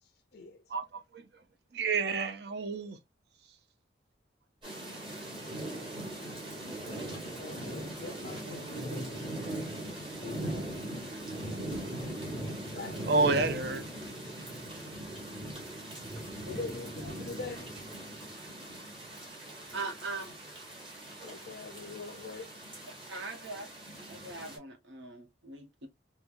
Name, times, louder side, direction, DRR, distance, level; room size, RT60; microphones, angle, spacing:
voice 1, 0.0-0.6 4.8-5.0 7.4-9.6 10.1-10.9 11.4-13.1 16.5-17.7 21.2-22.5, left 4 dB, 55° left, 0.4 m, -45 dB
voice 2, 0.7-1.4 1.7-3.0 13.1-13.8, right 3 dB, 60° right, 0.5 m, -29 dB
sound 1, 4.6-24.6, right 1 dB, 25° right, 1.6 m, -40 dB
voice 3, 19.7-20.3 23.1-23.7 24.1-25.9, right 3 dB, 80° right, 1.0 m, -40 dB
3.2 x 2.2 x 2.4 m
head